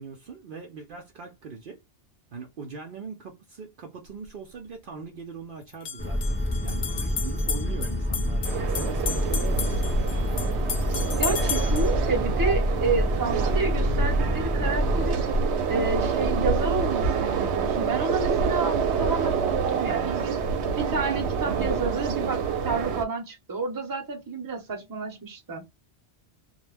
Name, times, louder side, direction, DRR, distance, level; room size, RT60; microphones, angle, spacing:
voice 1, 0.0-1.8 2.3-10.2, right 5 dB, 60° right, 0.7 m, -41 dB
sound 1, 4.1-4.2 5.7-11.9, left 7 dB, 65° left, 0.8 m, -34 dB
sound 2, 6.0-15.1, left 1 dB, 15° left, 0.5 m, -27 dB
sound 3, 8.4-23.0, right 5 dB, 80° right, 0.9 m, -27 dB
voice 2, 11.2-15.2 15.7-20.4 20.8-25.7, right 3 dB, 20° right, 0.7 m, -30 dB
2.3 x 2.1 x 3.2 m
omnidirectional pair, 1.1 m